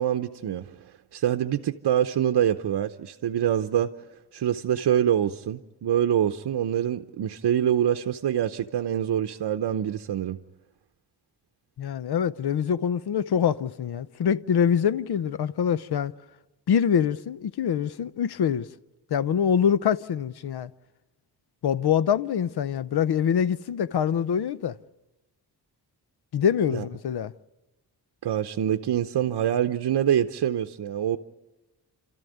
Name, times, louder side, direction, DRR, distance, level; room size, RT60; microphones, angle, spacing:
voice 1, 0.0-3.9 4.3-10.4 26.7-26.9 28.2-31.2, right 10 dB, 75° right, 0.8 m, -25 dB
voice 2, 11.8-16.1 16.7-18.7 19.1-20.7 21.6-24.7 26.3-27.3, left 8 dB, 70° left, 0.8 m, -24 dB
30.0 x 13.5 x 9.4 m
wide cardioid pair, 125°, 40 cm